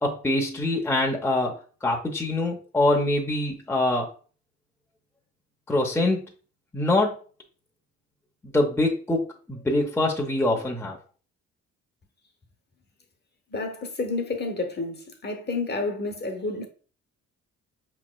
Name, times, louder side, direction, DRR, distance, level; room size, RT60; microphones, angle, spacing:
voice 1, 0.0-4.1 5.7-6.2 6.7-7.2 8.5-11.0, left 2 dB, 10° left, 0.7 m, -24 dB
voice 2, 13.5-16.7, left 3 dB, 35° left, 1.0 m, -30 dB
4.9 x 3.1 x 2.2 m
cardioid pair, 90°, 30 cm